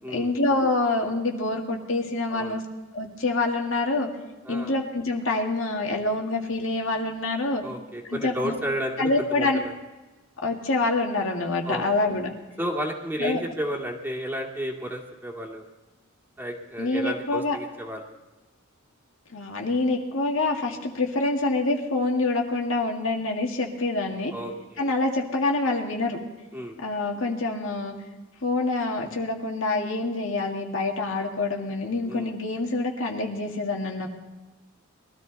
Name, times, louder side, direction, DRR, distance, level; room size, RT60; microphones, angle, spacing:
voice 1, 0.1-2.6 2.9-4.1 4.5-7.6 8.1-8.5 9.0-9.6 10.4-12.3 13.2-13.4 16.8-17.6 19.3-24.3 24.8-26.2 26.8-28.0 28.4-34.1, left 2 dB, 75° left, 1 dB, 2.1 m, -26 dB
voice 2, 2.3-2.6 4.4-4.7 7.6-9.7 11.7-12.1 12.6-15.6 16.4-18.1 24.3-24.9 26.5-26.8 32.0-32.3, equal, 10° right, -1 dB, 2.2 m, -32 dB
22.0 x 13.5 x 4.1 m, 1.2 s
head